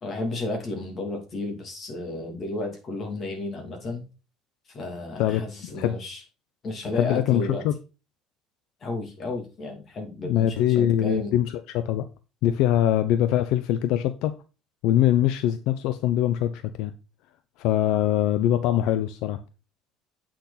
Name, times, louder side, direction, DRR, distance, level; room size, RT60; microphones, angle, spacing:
voice 1, 0.0-4.0 4.7-6.2 6.6-7.6 8.8-11.4, left 2 dB, 30° left, 3 dB, 2.7 m, -32 dB
voice 2, 6.9-7.7 10.2-12.1 12.4-14.4 14.8-16.9 17.6-19.4, left 12 dB, 65° left, 11 dB, 0.6 m, -23 dB
8.4 x 6.2 x 4.1 m, 0.31 s
cardioid pair, 165°, 0 cm